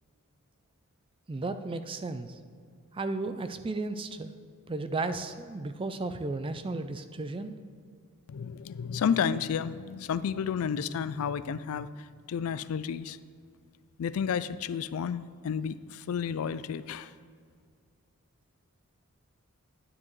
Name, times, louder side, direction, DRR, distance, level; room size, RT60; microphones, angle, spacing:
voice 1, 1.3-2.4 2.9-4.3 4.7-7.5, right 3 dB, 25° right, 10 dB, 0.4 m, -34 dB
voice 2, 8.3-13.2 14.0-17.1, left 7 dB, 70° left, 15 dB, 0.3 m, -31 dB
9.8 x 9.3 x 3.2 m, 2.1 s
head